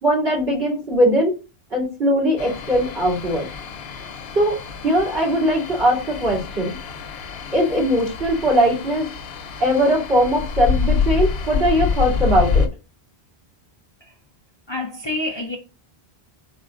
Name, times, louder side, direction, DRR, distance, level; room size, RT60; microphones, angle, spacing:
voice 1, 0.0-1.3 1.7-3.5 4.3-6.8 7.5-9.1 9.6-12.7, equal, 85° right, 3.1 m, -20 dB
sound 1, 2.4-12.7, left 5 dB, 80° left, 0.8 m, -26 dB
voice 2, 14.7-15.6, left 2 dB, 40° left, 0.4 m, -28 dB
4.3 x 4.0 x 2.5 m
omnidirectional pair, 1.0 m